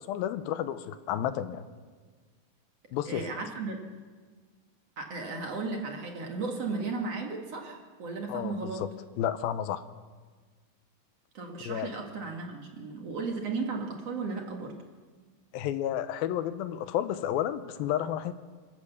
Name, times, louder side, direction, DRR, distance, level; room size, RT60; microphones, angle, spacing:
voice 1, 0.0-1.6 2.9-3.3 8.3-8.9 9.2-9.8 11.6-11.9 15.5-18.3, left 11 dB, 90° left, 12 dB, 2.7 m, -31 dB
voice 2, 3.1-3.8 5.0-8.8 11.3-14.7, right 4 dB, 50° right, 2 dB, 2.6 m, -35 dB
26.5 x 15.5 x 7.0 m, 1.5 s
omnidirectional pair, 4.2 m